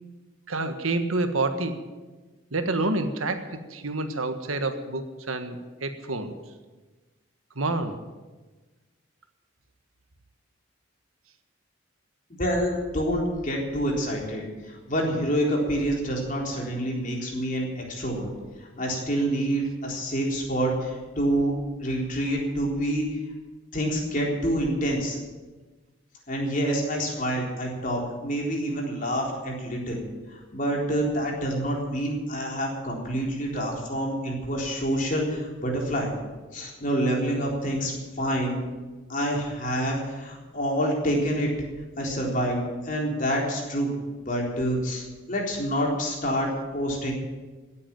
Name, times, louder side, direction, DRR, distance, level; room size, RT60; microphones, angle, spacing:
voice 1, 0.5-1.8 2.5-6.3 7.5-8.0, right 2 dB, 85° right, 8 dB, 1.5 m, -28 dB
voice 2, 12.3-18.3 18.6-21.5 21.8-23.1 23.7-25.2 26.3-30.0 30.3-36.1 36.5-38.6 39.1-41.5 42.0-43.9 44.2-47.1, equal, 40° left, -1 dB, 3.8 m, -27 dB
17.0 x 8.6 x 8.8 m, 1.3 s
head